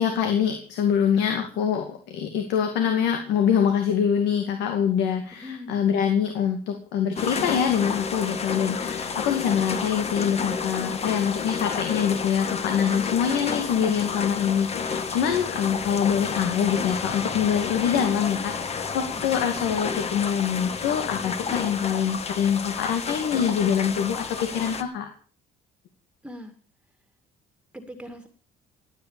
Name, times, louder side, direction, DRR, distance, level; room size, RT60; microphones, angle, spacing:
voice 1, 0.0-25.1, left 8 dB, 90° left, 5 dB, 2.3 m, -24 dB
voice 2, 5.4-5.8 19.1-19.2 26.2-26.5 27.7-28.3, left 1 dB, 5° right, 7 dB, 2.0 m, -40 dB
sound 1, 7.2-24.8, left 5 dB, 40° left, 1.6 m, -30 dB
17.5 x 9.5 x 7.1 m, 0.43 s
cardioid pair, 110°, 17 cm